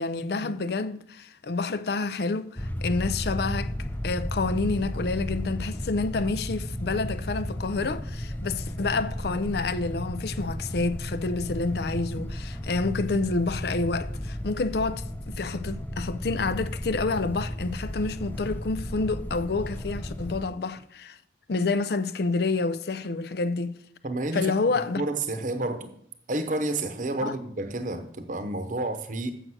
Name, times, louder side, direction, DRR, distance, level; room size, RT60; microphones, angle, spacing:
voice 1, 0.0-3.7 4.0-21.2 21.5-23.7 24.3-25.0 27.2-27.3, left 3 dB, 60° left, 0.5 m, -28 dB
sound 1, 2.6-20.4, equal, 10° left, 0.5 m, -34 dB
voice 2, 24.0-25.9 26.3-29.3, right 2 dB, 45° right, 0.8 m, -30 dB
7.8 x 6.5 x 6.1 m
head